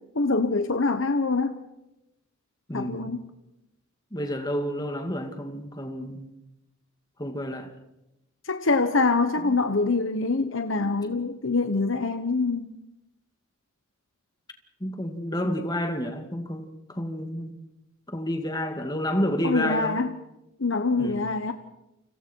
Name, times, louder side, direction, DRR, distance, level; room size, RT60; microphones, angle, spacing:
voice 1, 0.1-1.6 2.7-3.2 8.4-12.7 19.4-20.1 20.6-21.5, left 3 dB, 70° left, 1.1 m, -25 dB
voice 2, 2.7-3.1 4.1-6.3 7.2-7.7 9.4-9.6 14.8-17.6 18.1-20.0 20.9-21.3, equal, 20° left, 2.4 m, -30 dB
30.0 x 26.5 x 4.7 m
head